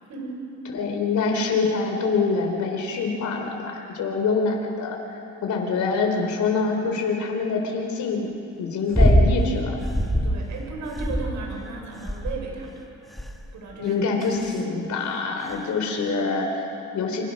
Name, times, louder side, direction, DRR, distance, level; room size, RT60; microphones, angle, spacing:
voice 1, 0.7-8.3 8.6-9.8 13.7-17.2, left 4 dB, 70° left, 2 dB, 3.6 m, -25 dB
sound 1, 8.9-9.4 9.8-10.4 10.9-11.6 12.1-12.5 13.2-13.5 14.2-14.6 15.5-15.6, equal, ahead, 2.1 m, -21 dB
voice 2, 10.2-12.8 13.5-14.0, right 3 dB, 75° right, 0 dB, 6.2 m, -35 dB
28.0 x 24.5 x 6.4 m, 2.7 s
cardioid pair, 90°, 30 cm